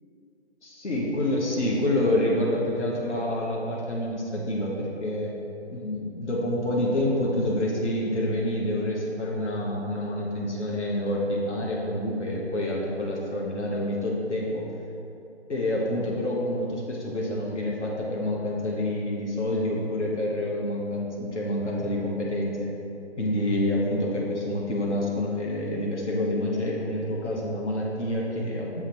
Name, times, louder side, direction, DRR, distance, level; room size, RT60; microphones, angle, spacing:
voice 1, 0.6-5.3 5.7-14.7 15.5-22.7 23.2-28.8, left 1 dB, 80° left, -3 dB, 1.3 m, -27 dB
7.3 x 3.7 x 4.4 m, 2.8 s
figure-of-eight pair, 155°, 35 cm